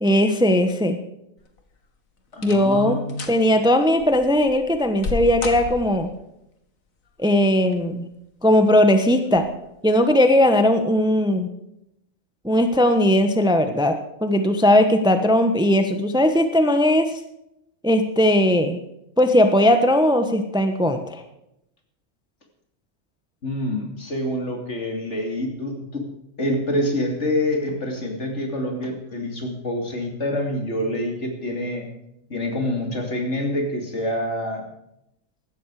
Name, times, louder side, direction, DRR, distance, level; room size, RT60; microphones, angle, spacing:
voice 1, 0.0-1.0 2.4-6.1 7.2-8.1 8.4-9.4 9.8-11.5 12.4-13.9 14.2-17.1 17.8-18.8 19.2-21.2, left 1 dB, 5° right, 7 dB, 1.1 m, -18 dB
sound 1, 1.4-1.8 2.3-2.8 3.1-3.4 4.0-6.2 7.4-8.0 8.4-8.5 9.3-9.5 9.8-9.9, left 4 dB, 85° left, 2.1 m, -33 dB
voice 2, 2.3-3.3 23.4-26.1 26.4-31.9 32.3-34.7, left 1 dB, 60° left, 2 dB, 3.2 m, -26 dB
16.0 x 13.0 x 4.9 m, 0.82 s
omnidirectional pair, 1.4 m